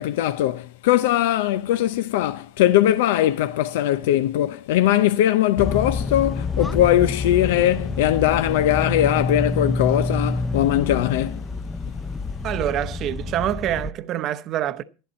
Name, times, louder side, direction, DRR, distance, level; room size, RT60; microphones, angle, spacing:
voice 1, 0.0-11.5, left 12 dB, 80° left, 0.6 m, -20 dB
sound 1, 5.6-13.9, left 3 dB, 10° left, 0.6 m, -27 dB
voice 2, 12.4-14.8, right 11 dB, 45° right, 0.8 m, -26 dB
12.0 x 11.0 x 4.3 m
supercardioid pair, 125°, 0 cm